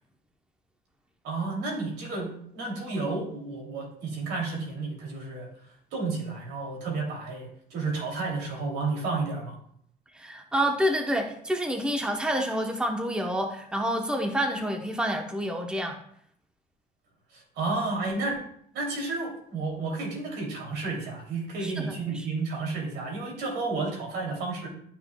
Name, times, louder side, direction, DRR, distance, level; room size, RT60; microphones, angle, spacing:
voice 1, 1.2-5.5 5.9-9.5 17.3-18.4 18.7-24.7, right 3 dB, 80° right, 0 dB, 2.9 m, -31 dB
voice 2, 10.1-16.0 21.6-22.3, equal, 5° right, 3 dB, 0.9 m, -28 dB
12.0 x 5.9 x 2.3 m, 0.66 s
cardioid pair, 110°, 17 cm